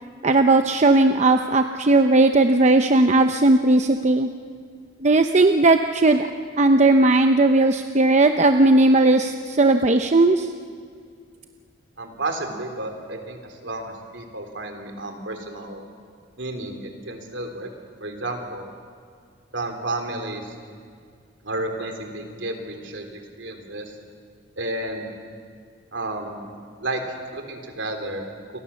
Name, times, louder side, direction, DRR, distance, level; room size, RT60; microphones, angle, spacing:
voice 1, 0.2-4.3 5.0-6.3 6.6-10.5, right 2 dB, 40° right, 7 dB, 0.8 m, -17 dB
voice 2, 12.0-15.8 16.4-17.7 18.0-18.7 19.5-20.6 21.4-23.9 24.6-25.1 25.9-26.4 26.8-28.3, right 2 dB, 70° right, 4 dB, 3.6 m, -31 dB
29.0 x 23.5 x 7.1 m, 2.1 s
head